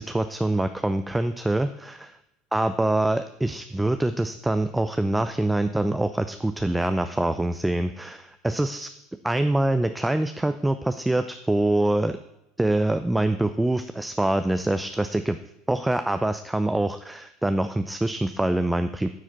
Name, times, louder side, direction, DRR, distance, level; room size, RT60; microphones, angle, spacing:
voice 1, 0.0-2.2 2.5-8.9 9.2-12.2 12.6-15.4 15.7-19.1, right 1 dB, 10° right, 9 dB, 0.6 m, -25 dB
10.0 x 4.9 x 8.0 m, 0.89 s
hypercardioid pair, 70°, 0 cm